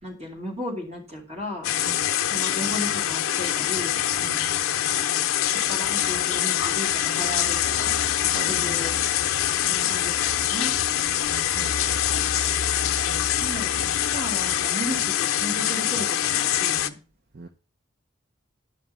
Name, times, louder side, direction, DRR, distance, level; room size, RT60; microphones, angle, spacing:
voice 1, 0.0-1.7 2.2-4.0 5.7-8.0 8.2-9.0 9.7-10.2 10.5-10.7 13.4-13.9 14.1-17.0, left 1 dB, 30° right, 0 dB, 2.8 m, -35 dB
sound 1, 1.6-16.9, left 10 dB, 85° left, 0.6 m, -24 dB
voice 2, 8.3-9.0 11.5-12.3 17.3-17.5, right 3 dB, 45° right, 8 dB, 0.6 m, -40 dB
11.0 x 5.9 x 5.3 m, 0.37 s
head